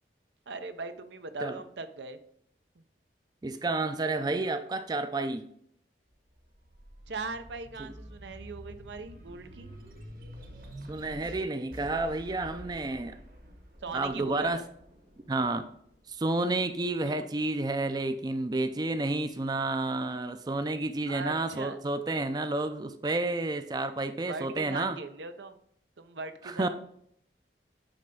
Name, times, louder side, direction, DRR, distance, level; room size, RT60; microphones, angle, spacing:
voice 1, 0.5-2.2 2.8-2.9 7.1-9.7 13.8-14.6 17.0-17.3 21.0-21.8 24.3-25.6 26.0-26.7, right 3 dB, 90° right, 9 dB, 0.7 m, -39 dB
voice 2, 3.4-5.5 7.8-7.9 10.9-13.2 13.9-14.6 15.3-15.7 16.1-25.0 26.4-26.7, right 2 dB, 25° right, 10 dB, 0.4 m, -30 dB
sound 1, 6.1-16.9 17.4-18.6, equal, 55° right, 1.2 m, -48 dB
8.8 x 3.4 x 5.3 m, 0.68 s
head